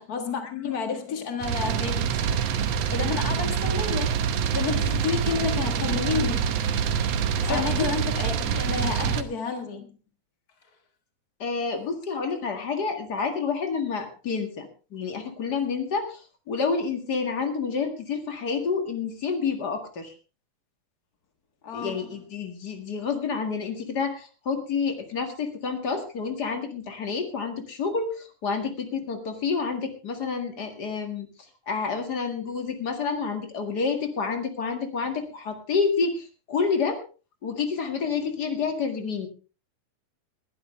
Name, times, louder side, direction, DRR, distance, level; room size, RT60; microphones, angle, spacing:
voice 1, 0.0-2.2 2.9-4.1 4.5-6.6 7.4-10.0 21.6-22.1, left 6 dB, 70° left, 0.8 m, -30 dB
sound 1, 1.4-9.2, right 7 dB, 90° right, 1.4 m, -26 dB
voice 2, 11.4-20.1 21.7-31.3 31.7-37.0 37.4-39.3, left 5 dB, 35° left, 1.7 m, -29 dB
21.0 x 11.5 x 3.3 m
omnidirectional pair, 4.3 m